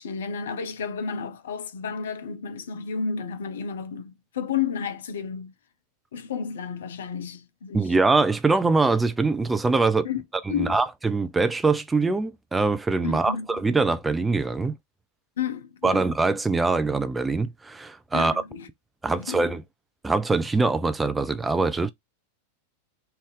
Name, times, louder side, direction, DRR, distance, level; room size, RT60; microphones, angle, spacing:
voice 1, 0.0-5.5 6.1-7.9 10.0-10.8 13.0-13.6 15.4-16.1 18.1-18.7 19.1-19.5, left 6 dB, 60° left, 0.6 m, -32 dB
voice 2, 7.7-10.1 10.6-14.7 15.8-18.3 19.0-19.6 20.0-21.9, right 3 dB, 10° right, 0.5 m, -23 dB
3.4 x 2.6 x 3.4 m
figure-of-eight pair, 90°, 0 cm